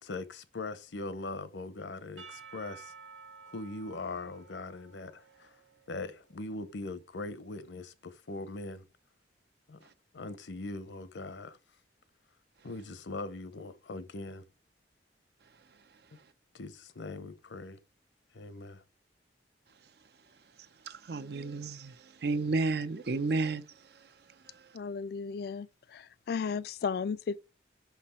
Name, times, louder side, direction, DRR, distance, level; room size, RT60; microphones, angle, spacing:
voice 1, 0.0-2.9 3.5-5.5 5.9-8.9 9.7-9.9 10.1-11.6 12.6-14.4 16.5-17.8 18.3-18.8, left 2 dB, 80° left, 0.8 m, -41 dB
Percussion / Church bell, 2.2-6.3, right 5 dB, 90° right, 1.7 m, -52 dB
voice 2, 20.9-23.6 24.5-24.6, right 3 dB, 60° right, 0.5 m, -32 dB
voice 3, 24.7-27.4, left 5 dB, 55° left, 0.3 m, -35 dB
6.1 x 5.8 x 4.3 m
head